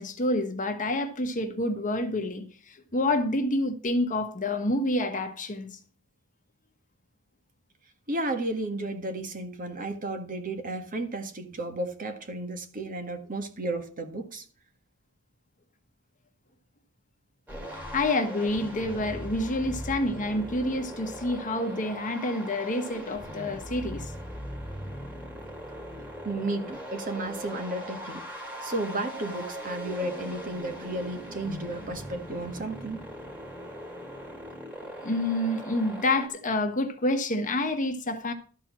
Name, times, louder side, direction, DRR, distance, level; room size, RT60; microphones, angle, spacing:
voice 1, 0.0-5.8 17.9-24.1 35.0-38.3, left 1 dB, 35° left, 1.3 m, -28 dB
voice 2, 8.1-14.4 26.2-28.3 28.6-33.0, right 2 dB, 40° right, 1.6 m, -33 dB
sound 1, 17.5-36.3, equal, 5° right, 2.8 m, -40 dB
12.5 x 4.6 x 7.4 m
head